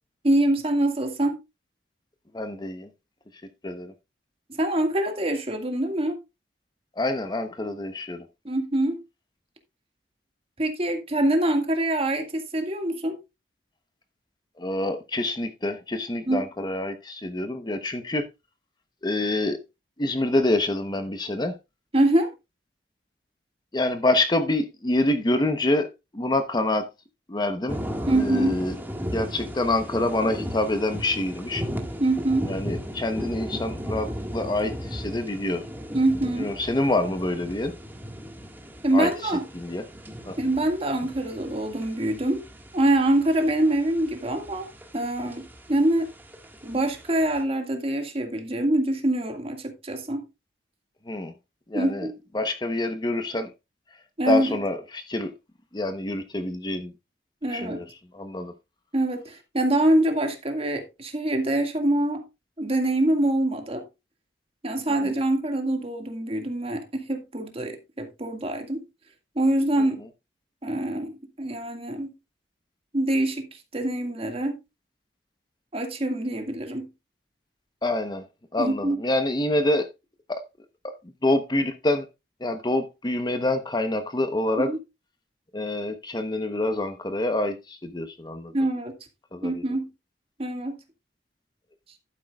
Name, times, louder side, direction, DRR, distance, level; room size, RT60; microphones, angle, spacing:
voice 1, 0.2-1.4 4.5-6.2 8.4-9.0 10.6-13.1 16.3-16.5 21.9-22.3 28.1-28.6 32.0-32.5 35.9-36.5 38.8-39.5 40.4-42.4 42.7-46.1 46.6-50.3 51.7-52.1 54.2-54.6 57.4-57.9 58.9-62.2 62.6-63.8 64.6-68.8 69.4-70.0 70.6-72.1 72.9-74.5 75.7-76.9 78.6-79.0 84.6-84.8 88.5-89.0 89.4-89.9 90.4-90.8, right 1 dB, 35° right, 2.0 m, -25 dB
voice 2, 2.3-2.9 3.6-3.9 7.0-8.2 14.6-18.3 19.0-19.6 20.0-21.5 23.7-25.9 26.1-26.9 27.3-27.8 28.1-28.8 29.1-31.6 32.5-35.6 36.4-37.7 38.9-39.1 39.5-39.8 40.2-40.4 51.1-51.3 51.7-52.1 52.3-53.5 54.3-55.3 55.7-56.9 57.5-57.9 58.1-58.5 65.0-65.1 77.8-78.2 78.5-79.9 80.3-80.4 81.2-82.0 82.4-84.7 85.5-88.5 89.3-89.6, left 2 dB, 25° left, 0.9 m, -26 dB
sound 1, 27.7-47.4, equal, 10° right, 1.7 m, -37 dB
12.0 x 9.3 x 2.4 m
head